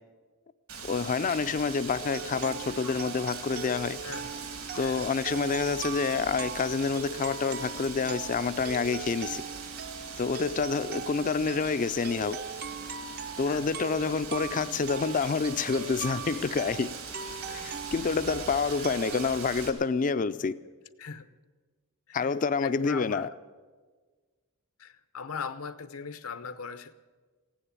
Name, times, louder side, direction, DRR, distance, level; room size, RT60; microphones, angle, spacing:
Wind, 0.7-19.7, right 5 dB, 70° right, 2.4 m, -41 dB
voice 1, 0.9-4.0 4.8-9.4 10.2-12.4 13.4-16.9 17.5-20.6 22.1-23.3, left 5 dB, 40° left, 13 dB, 0.4 m, -28 dB
sound 1, 2.0-19.3, right 6 dB, 50° right, 0.7 m, -40 dB
voice 2, 4.0-4.4 4.8-5.1 13.5-13.7 17.5-17.7 21.0-21.3 22.1-22.3 22.6-23.3 24.8-26.9, left 5 dB, 80° left, 12 dB, 0.8 m, -39 dB
16.0 x 9.9 x 8.9 m, 1.4 s
head